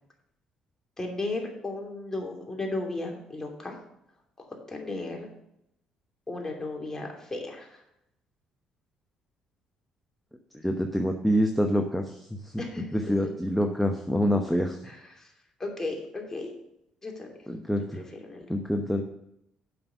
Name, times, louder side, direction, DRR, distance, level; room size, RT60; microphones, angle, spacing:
voice 1, 1.0-3.8 4.4-5.3 6.3-7.8 12.6-13.3 14.8-15.3 15.6-16.5 17.0-17.3 17.9-18.4, left 2 dB, 20° left, 1 dB, 2.8 m, -35 dB
voice 2, 10.6-12.2 12.9-14.8 17.5-17.8 18.5-19.0, equal, 5° left, 3 dB, 0.9 m, -26 dB
7.9 x 5.9 x 7.0 m, 0.79 s
supercardioid pair, 70°, 2 cm